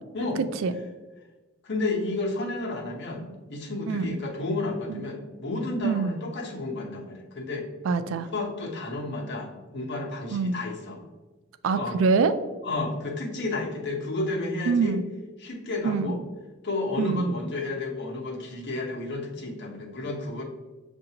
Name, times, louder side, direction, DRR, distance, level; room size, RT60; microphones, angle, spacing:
voice 1, 1.6-7.7 8.3-11.0 11.7-12.0 12.6-15.0 15.4-16.2 16.6-20.4, left 2 dB, 60° left, -1 dB, 0.9 m, -31 dB
voice 2, 3.9-4.2 4.9-5.0 5.8-6.1 7.8-8.3 10.3-10.5 11.6-12.3 14.7-15.0 15.8-16.2 17.0-17.4, right 4 dB, 70° right, 13 dB, 0.3 m, -24 dB
6.5 x 2.6 x 2.8 m, 1.3 s
head